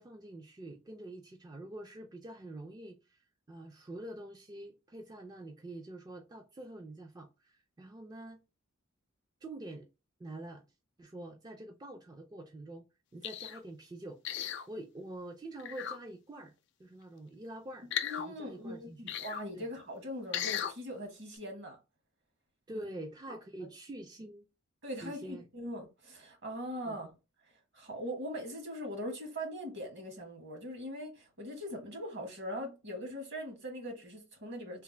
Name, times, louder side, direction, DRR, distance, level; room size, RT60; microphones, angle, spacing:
voice 1, 0.0-8.4 9.4-9.9 10.2-10.6 11.0-12.9 13.1-14.2 14.7-16.5 16.8-17.9 18.2-19.1 19.6-19.7 22.7-24.5 25.0-25.4 26.9-27.0, right 1 dB, 20° right, 0.3 m, -46 dB
sound 1, 13.2-13.6 14.2-14.7 15.6-16.0 17.9-18.3 19.1-19.4 20.3-20.7 21.3-21.4, left 9 dB, 60° left, 0.4 m, -36 dB
voice 2, 18.0-21.8 22.7-22.8 23.6-23.7 24.8-27.1 27.7-34.8, equal, 55° right, 1.2 m, -41 dB
3.3 x 2.1 x 3.2 m
head